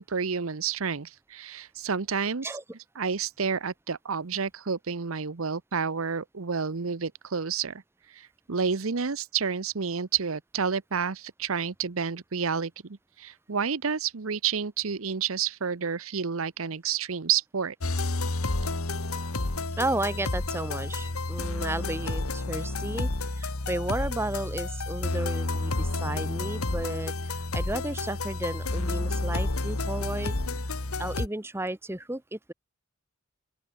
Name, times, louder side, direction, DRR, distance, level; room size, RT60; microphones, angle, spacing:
voice 1, 0.0-2.5 3.0-7.8 8.1-17.7, right 6 dB, 75° right, 0.9 m, -30 dB
sound 1, 17.8-31.3, left 2 dB, 90° left, 1.8 m, -30 dB
voice 2, 19.8-30.3 31.0-32.5, right 1 dB, 10° right, 0.8 m, -33 dB
open air
head